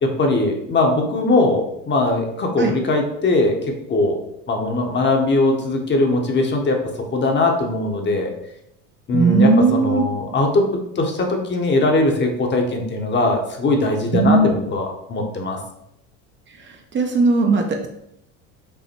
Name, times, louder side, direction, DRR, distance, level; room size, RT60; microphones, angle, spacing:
voice 1, 0.0-3.6 3.9-4.2 4.5-6.8 7.1-8.3 9.1-15.6, left 2 dB, 30° left, 3 dB, 0.9 m, -20 dB
voice 2, 9.1-10.0 14.1-14.5 16.9-17.9, right 3 dB, 30° right, 2 dB, 0.6 m, -17 dB
5.4 x 2.1 x 4.4 m, 0.79 s
supercardioid pair, 100°, 37 cm